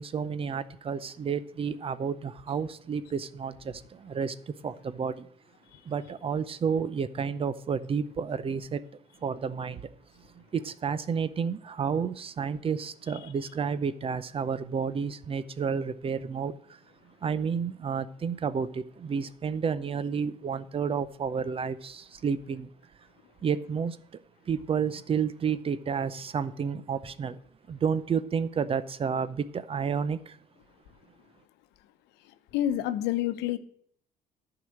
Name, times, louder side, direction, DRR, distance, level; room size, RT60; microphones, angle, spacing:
voice 1, 0.0-5.3 5.8-8.8 9.2-9.9 10.3-16.8 17.2-22.7 23.4-24.0 24.5-27.4 27.7-30.4, right 6 dB, 35° right, 0.6 m, -31 dB
voice 2, 32.2-33.6, left 12 dB, 85° left, 0.8 m, -29 dB
10.5 x 4.9 x 7.6 m
cardioid pair, 110°, 17 cm